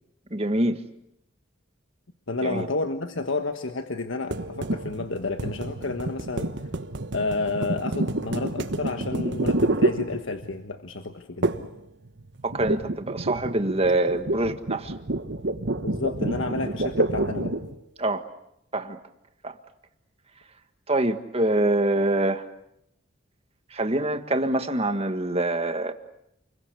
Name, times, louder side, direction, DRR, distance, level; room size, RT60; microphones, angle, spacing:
voice 1, 0.3-0.8 2.4-2.7 12.4-14.9 18.0-18.2 18.7-19.0 19.4-19.5 20.9-22.4 23.7-25.9, right 1 dB, 30° right, 8 dB, 1.7 m, -25 dB
voice 2, 2.3-6.5 7.1-11.5 15.8-17.5, left 3 dB, 80° left, 6 dB, 1.5 m, -30 dB
sound 1, 4.3-10.6 11.4-11.8 12.1-17.8, right 2 dB, 60° right, 1.2 m, -28 dB
29.0 x 22.0 x 8.4 m, 0.81 s
head